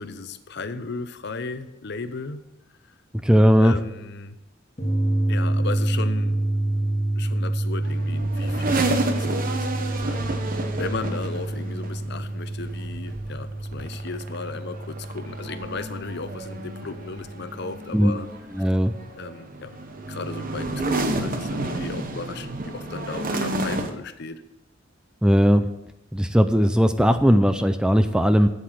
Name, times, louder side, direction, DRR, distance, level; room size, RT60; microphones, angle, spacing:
voice 1, 0.0-2.4 2.8-2.9 3.6-4.4 5.3-6.4 7.2-18.3 18.6-18.8 19.2-19.8 20.1-24.4, left 4 dB, 60° left, 11 dB, 0.7 m, -35 dB
voice 2, 3.2-3.7 17.9-18.1 18.6-18.9 25.2-25.6 26.1-28.5, equal, 5° right, 9 dB, 0.4 m, -18 dB
sound 1, 4.8-17.7, right 1 dB, 35° left, 1.9 m, -28 dB
sound 2, 7.8-23.9, right 2 dB, 45° right, 1.0 m, -31 dB
8.3 x 8.1 x 6.0 m, 0.88 s
head